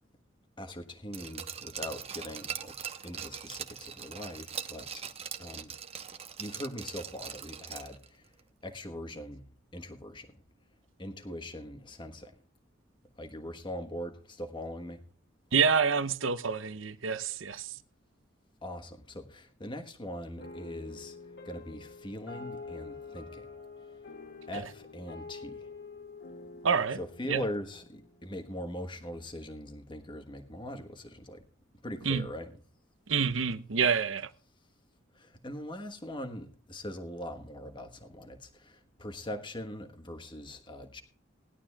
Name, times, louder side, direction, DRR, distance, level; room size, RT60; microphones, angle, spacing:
voice 1, 0.6-2.8 3.0-5.1 5.4-5.7 6.4-8.3 8.6-9.4 9.7-10.3 11.0-12.3 13.2-15.0 18.6-21.2 21.4-23.5 24.5-25.7 27.0-31.4 31.8-32.6 35.1-41.0, left 1 dB, 25° left, 1.3 m, -41 dB
Glass, 1.1-8.1 8.4-8.5, right 8 dB, 30° right, 1.0 m, -41 dB
voice 2, 15.5-17.7 26.6-27.0 27.3-27.4 32.1-32.2 33.1-34.3, right 6 dB, 90° right, 0.8 m, -27 dB
sound 1, 20.4-28.9, left 4 dB, 60° left, 2.0 m, -47 dB
19.5 x 11.5 x 2.4 m
head